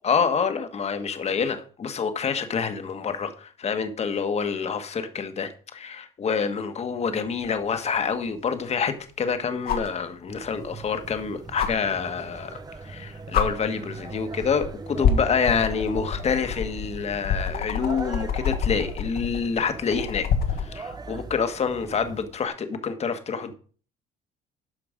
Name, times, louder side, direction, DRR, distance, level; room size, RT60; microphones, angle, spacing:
voice 1, 0.0-20.3 20.6-23.5, left 6 dB, 40° left, 1.5 m, -27 dB
sound 1, 7.4-7.5 9.7-10.0 11.6-11.7 12.8-13.0 13.3-13.5 14.4-14.7 15.0-20.7 22.4-22.5, left 7 dB, 65° left, 1.6 m, -26 dB
sound 2, 10.3-22.2, right 4 dB, 25° right, 1.0 m, -41 dB
12.5 x 5.2 x 5.1 m
cardioid pair, 110°, 17 cm